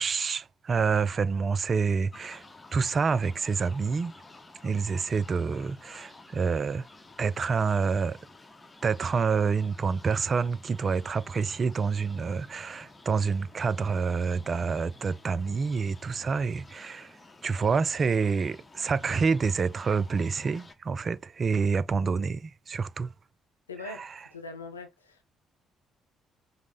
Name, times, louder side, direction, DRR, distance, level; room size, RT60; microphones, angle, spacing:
voice 1, 0.0-2.4 2.7-4.1 4.6-6.9 7.2-8.2 8.8-23.1 23.8-24.1, right 5 dB, 40° right, 0.3 m, -28 dB
sound 1, 2.1-20.7, left 2 dB, 20° left, 0.8 m, -52 dB
voice 2, 23.7-24.0 24.3-25.3, left 3 dB, 80° left, 0.5 m, -41 dB
5.1 x 2.1 x 3.8 m
figure-of-eight pair, 45°, 0 cm